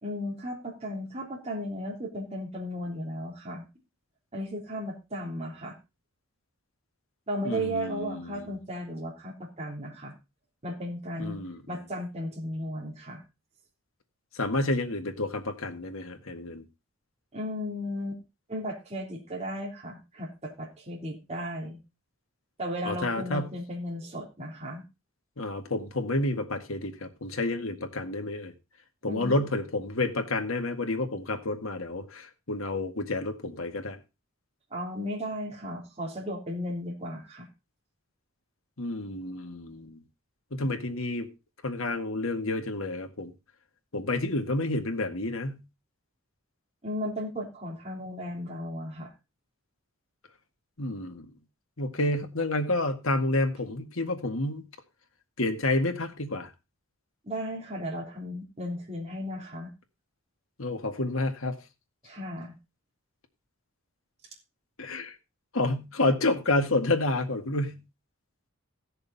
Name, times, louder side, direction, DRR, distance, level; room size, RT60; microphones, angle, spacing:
voice 1, 0.0-3.7 4.3-5.8 7.3-10.1 10.6-11.4 11.7-13.2 17.3-18.2 18.5-21.8 22.6-24.8 29.1-29.5 34.7-37.5 46.8-49.1 57.3-59.7 62.0-62.5, equal, 30° right, 3.4 m, -35 dB
voice 2, 7.4-8.5 11.2-11.6 14.3-16.6 22.9-23.5 25.4-28.5 29.0-34.0 38.8-40.0 40.5-41.3 41.6-43.3 43.9-45.6 50.8-51.3 51.8-54.7 55.4-56.5 60.6-61.6 64.8-65.2 65.5-67.8, left 2 dB, 75° left, 1.9 m, -29 dB
16.5 x 6.8 x 4.1 m
head